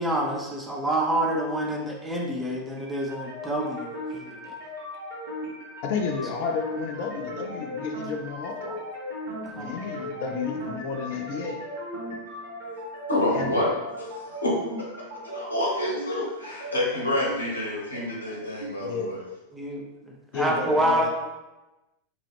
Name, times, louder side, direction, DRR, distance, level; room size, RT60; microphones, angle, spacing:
voice 1, 0.0-4.5 8.6-8.8 9.6-10.1 19.5-19.9 20.3-21.1, right 1 dB, 10° right, -1 dB, 0.6 m, -27 dB
sound 1, 2.8-18.8, left 1 dB, 60° right, 1.2 m, -37 dB
voice 2, 5.8-8.7 9.5-11.6 13.3-13.5 18.8-19.1 20.3-21.1, left 5 dB, 50° left, 3 dB, 0.4 m, -31 dB
voice 3, 13.1-13.7 14.0-19.2, left 1 dB, 80° left, -4 dB, 0.9 m, -28 dB
2.9 x 2.3 x 3.2 m, 1.1 s
figure-of-eight pair, 90°, 0 cm